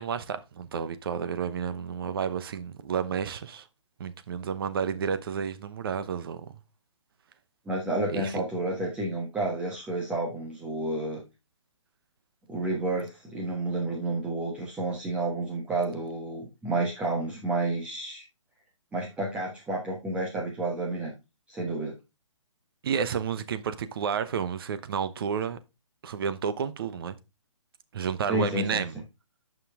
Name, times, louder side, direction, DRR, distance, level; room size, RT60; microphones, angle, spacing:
voice 1, 0.0-3.7 4.0-6.5 8.1-8.4 22.8-25.6 26.0-27.2 27.9-29.0, right 7 dB, 45° right, 1.0 m, -31 dB
voice 2, 7.7-11.2 12.5-18.2 18.9-21.1 21.5-21.9 28.3-28.8, right 2 dB, 5° right, 1.2 m, -30 dB
9.3 x 5.6 x 3.6 m
hypercardioid pair, 150°, 17 cm